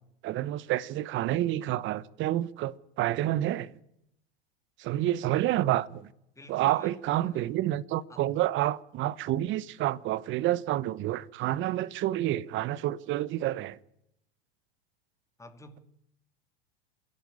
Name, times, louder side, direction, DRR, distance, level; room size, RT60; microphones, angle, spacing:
voice 1, 0.2-3.7 4.8-6.1 6.5-13.8, right 14 dB, 40° right, 1.0 m, -29 dB
voice 2, 6.4-7.5 8.1-8.3 15.4-15.8, left 1 dB, 10° left, 2.7 m, -50 dB
27.5 x 11.0 x 9.9 m
hypercardioid pair, 100°, 31 cm